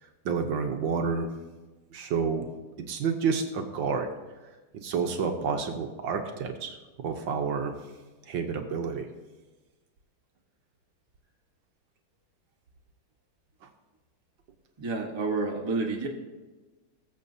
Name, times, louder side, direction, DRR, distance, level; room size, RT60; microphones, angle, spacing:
voice 1, 0.2-1.3 1.9-2.5 2.9-4.1 4.8-6.8 7.0-7.7 8.3-9.1, right 5 dB, 65° right, 5 dB, 1.5 m, -29 dB
voice 2, 14.8-16.1, right 3 dB, 15° right, 0 dB, 0.9 m, -29 dB
20.5 x 7.3 x 2.7 m, 1.2 s
omnidirectional pair, 2.3 m